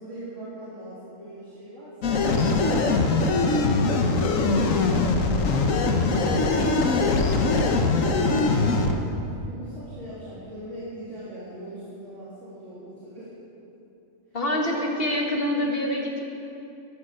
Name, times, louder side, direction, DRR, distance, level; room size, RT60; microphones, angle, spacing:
voice 1, 0.0-2.3 3.0-13.3 14.5-14.8, right 1 dB, 55° right, -12 dB, 3.5 m, -40 dB
sound 1, 2.0-8.9, left 3 dB, 65° left, 1.4 m, -22 dB
voice 2, 14.3-16.2, left 1 dB, 40° left, 0 dB, 1.9 m, -26 dB
13.5 x 12.0 x 6.6 m, 2.7 s
omnidirectional pair, 1.5 m